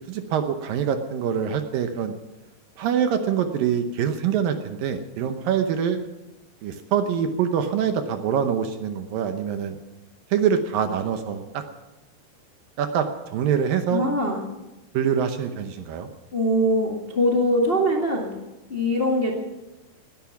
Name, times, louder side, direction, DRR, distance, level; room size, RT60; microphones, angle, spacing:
voice 1, 0.1-2.2 2.8-6.0 6.6-9.8 10.3-11.6 12.8-13.1 13.3-14.0 14.9-16.1, right 8 dB, 70° right, 7 dB, 2.3 m, -24 dB
voice 2, 13.9-14.4 16.3-18.3 18.7-19.3, equal, 55° left, -1 dB, 0.6 m, -22 dB
19.0 x 11.0 x 5.9 m, 1.0 s
omnidirectional pair, 4.8 m